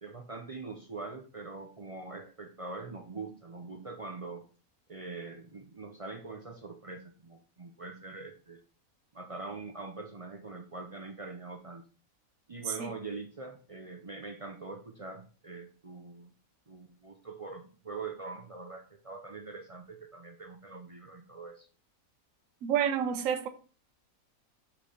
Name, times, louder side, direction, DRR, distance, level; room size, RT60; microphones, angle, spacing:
voice 1, 0.0-4.4 4.9-8.6 9.1-11.8 12.5-16.3 16.7-21.7, right 3 dB, 45° right, 0.4 m, -43 dB
voice 2, 22.6-23.5, right 9 dB, 70° right, 1.0 m, -29 dB
5.9 x 3.3 x 5.5 m
omnidirectional pair, 1.5 m